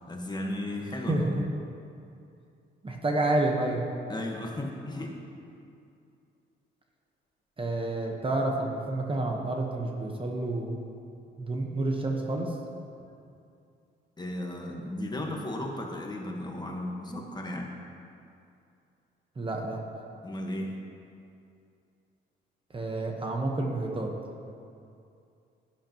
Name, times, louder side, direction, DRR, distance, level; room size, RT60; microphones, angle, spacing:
voice 1, 0.1-1.4 4.1-5.1 14.2-17.7 20.2-20.8, left 1 dB, 20° left, 0 dB, 1.4 m, -35 dB
voice 2, 1.1-1.5 2.8-3.8 7.6-10.9 11.4-12.6 19.4-19.8 22.7-24.1, right 2 dB, 25° right, 1 dB, 1.1 m, -29 dB
12.0 x 11.0 x 3.0 m, 2.5 s
cardioid pair, 90°, 20 cm